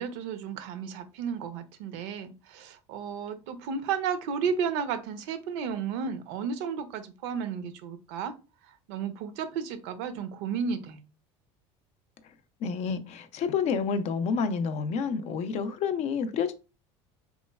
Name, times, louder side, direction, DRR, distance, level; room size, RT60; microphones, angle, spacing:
voice 1, 0.0-8.3 8.9-11.0, right 6 dB, 75° right, 0.5 m, -33 dB
voice 2, 12.6-16.5, left 6 dB, 50° left, 0.4 m, -29 dB
3.0 x 2.2 x 2.2 m
supercardioid pair, 90°, 15 cm